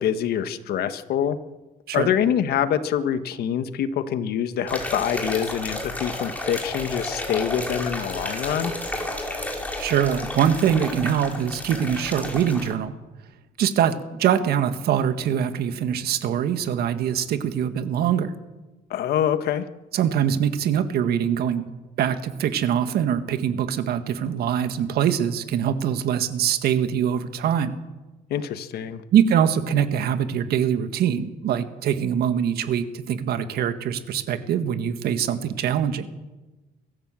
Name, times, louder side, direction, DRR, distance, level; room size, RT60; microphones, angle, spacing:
voice 1, 0.0-1.4 1.9-8.7 18.9-19.6 28.3-29.0, left 9 dB, 70° left, 10 dB, 1.5 m, -25 dB
sound 1, 4.7-12.7, left 1 dB, 10° left, 5.4 m, -31 dB
voice 2, 9.8-12.9 13.6-18.3 19.9-21.7 22.0-27.7 29.1-36.1, right 9 dB, 65° right, 9 dB, 1.8 m, -23 dB
23.5 x 15.0 x 7.6 m, 1.1 s
cardioid pair, 110°, 17 cm